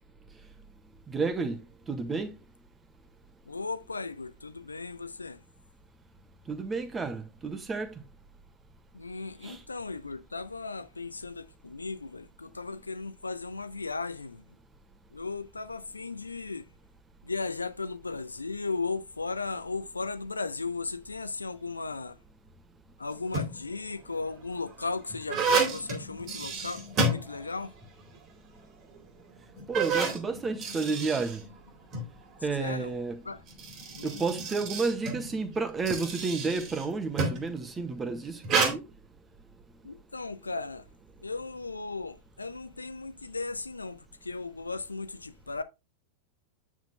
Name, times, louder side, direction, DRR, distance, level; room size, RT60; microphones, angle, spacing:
voice 1, 1.1-1.6 1.9-2.3 6.5-7.9 9.4-9.6 29.7-31.4 32.4-33.2 34.0-38.9, right 4 dB, 15° right, 1.6 m, -31 dB
voice 2, 3.5-5.4 8.9-14.4 15.1-16.7 17.2-22.2 23.0-27.7 32.6-33.0 33.2-33.4 34.0-34.2 39.8-40.9 41.2-45.6, left 3 dB, 80° left, 0.7 m, -36 dB
sound 1, 23.1-23.7 24.4-27.8 28.1-28.2 29.0-29.1 29.5-32.1 33.3-37.5 38.4-38.7, right 3 dB, 35° right, 2.4 m, -31 dB
9.2 x 7.4 x 2.2 m
figure-of-eight pair, 90°, 0 cm